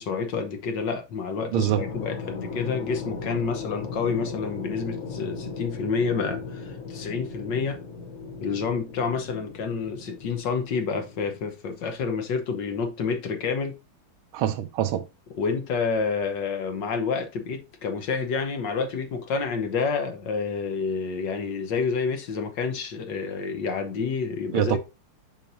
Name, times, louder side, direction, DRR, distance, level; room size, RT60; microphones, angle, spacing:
voice 1, 0.0-7.8 8.4-13.8 15.4-24.8, left 5 dB, 60° left, 1.6 m, -29 dB
sound 1, 1.5-11.4, left 4 dB, 45° left, 1.1 m, -37 dB
voice 2, 1.5-1.8 14.3-15.0 24.5-24.8, right 11 dB, 80° right, 1.6 m, -24 dB
6.8 x 5.9 x 2.6 m
omnidirectional pair, 2.3 m